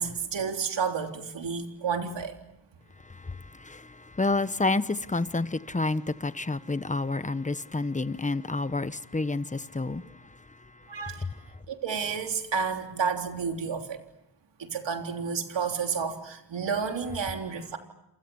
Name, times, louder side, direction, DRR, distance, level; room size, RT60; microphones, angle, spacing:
voice 1, 0.0-2.3 10.9-11.2 11.7-14.0 14.6-17.8, right 6 dB, 85° right, 3.6 m, -31 dB
voice 2, 3.1-10.0 11.2-11.3, left 3 dB, 15° left, 1.1 m, -29 dB
29.0 x 27.5 x 7.2 m
wide cardioid pair, 100°, 43 cm